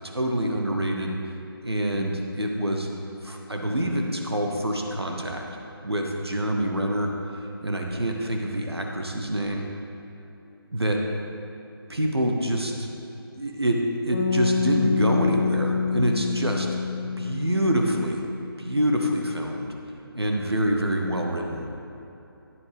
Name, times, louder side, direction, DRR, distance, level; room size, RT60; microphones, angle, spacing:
voice 1, 0.1-1.1 1.6-2.9 3.2-5.4 5.8-7.1 7.6-9.6 10.7-11.0 11.9-12.9 13.4-13.8 14.0-16.7 17.2-18.2 18.6-19.7 20.1-21.7, equal, 80° right, 1 dB, 1.1 m, -26 dB
sound 1, 14.1-18.3, left 5 dB, 35° left, 1.1 m, -26 dB
10.0 x 10.0 x 3.5 m, 2.9 s
figure-of-eight pair, 150°, 13 cm